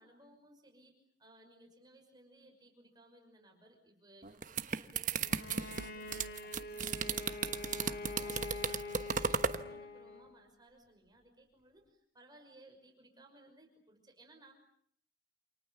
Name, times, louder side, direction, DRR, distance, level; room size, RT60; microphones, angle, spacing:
voice 1, 0.0-14.5, right 1 dB, 25° right, 3 dB, 5.8 m, -61 dB
sound 1, 4.2-9.6, right 5 dB, 45° right, 1.2 m, -35 dB
Bowed string instrument, 5.2-10.4, left 2 dB, 60° left, 2.8 m, -44 dB
29.0 x 28.0 x 7.2 m, 0.63 s
head